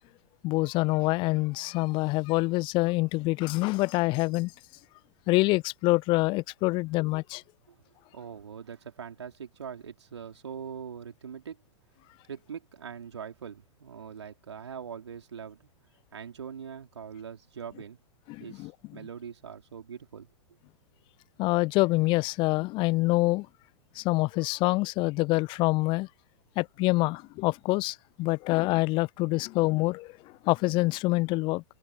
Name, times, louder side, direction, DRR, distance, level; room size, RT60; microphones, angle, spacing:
voice 1, 0.4-4.5 5.3-7.4 18.3-18.7 21.4-23.5 24.0-26.1 26.6-30.2 30.4-31.6, left 22 dB, 35° left, 0.7 m, -26 dB
voice 2, 8.1-11.6 12.3-15.7 16.1-18.0 18.4-20.3, right 7 dB, 70° right, 3.9 m, -42 dB
figure-of-eight pair, 95°, 15 cm